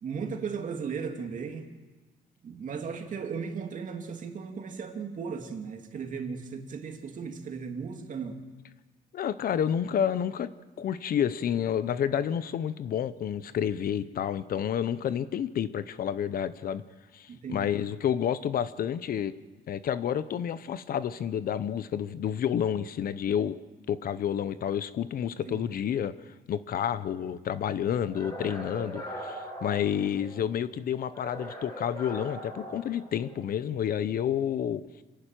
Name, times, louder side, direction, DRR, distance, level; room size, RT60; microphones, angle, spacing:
voice 1, 0.0-1.7 2.4-8.4 17.3-17.7 25.3-25.7, right 5 dB, 50° right, 4 dB, 2.4 m, -36 dB
voice 2, 9.1-10.5 10.8-16.8 17.1-19.3 19.7-23.6 23.9-26.1 26.5-34.8, left 9 dB, 60° left, 14 dB, 0.8 m, -29 dB
sound 1, 28.1-30.5 31.1-33.5, equal, 20° left, 7.4 m, -41 dB
27.0 x 11.5 x 9.1 m, 1.2 s
cardioid pair, 140°, 17 cm